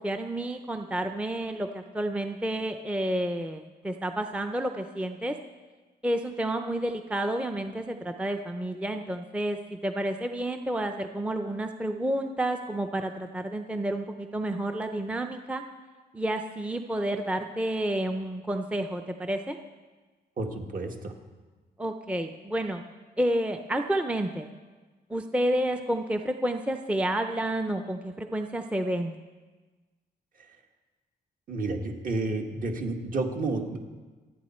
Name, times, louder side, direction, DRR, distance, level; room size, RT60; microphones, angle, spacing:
voice 1, 0.0-5.4 6.0-15.6 16.1-19.6 21.8-22.8 23.2-24.5 25.1-29.2, right 1 dB, 5° right, 6 dB, 0.5 m, -30 dB
voice 2, 20.4-21.1 30.4-30.6 31.5-33.8, right 3 dB, 50° right, 3 dB, 1.7 m, -31 dB
27.0 x 9.3 x 4.3 m, 1.3 s
wide cardioid pair, 160°, 18 cm